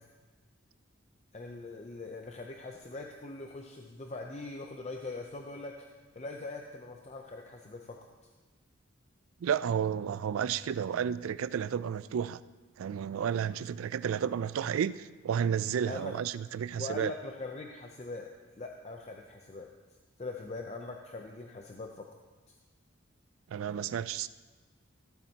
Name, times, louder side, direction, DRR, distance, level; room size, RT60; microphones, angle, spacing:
voice 1, 1.3-8.0 15.9-16.1 16.8-18.3 18.6-19.7 20.2-22.1 22.5-22.6, left 3 dB, 35° left, 2 dB, 0.5 m, -42 dB
voice 2, 9.4-12.4 12.8-17.1 23.5-24.3, right 8 dB, 85° right, 16 dB, 0.3 m, -32 dB
15.0 x 8.7 x 2.8 m, 1.3 s
head